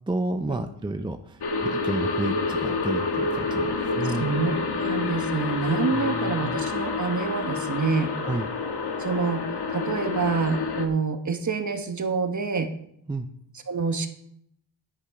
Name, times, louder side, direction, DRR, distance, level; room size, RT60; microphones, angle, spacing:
voice 1, 0.1-4.3 5.9-6.6 8.2-8.5 13.1-13.3, right 2 dB, 10° right, 7 dB, 0.5 m, -31 dB
sound 1, 1.4-10.9, left 4 dB, 60° left, 1.4 m, -28 dB
voice 2, 4.2-8.1 9.0-9.4 9.7-12.7 13.7-14.1, right 5 dB, 40° right, 5 dB, 1.4 m, -27 dB
9.9 x 8.4 x 4.9 m, 0.72 s
cardioid pair, 85°, 46 cm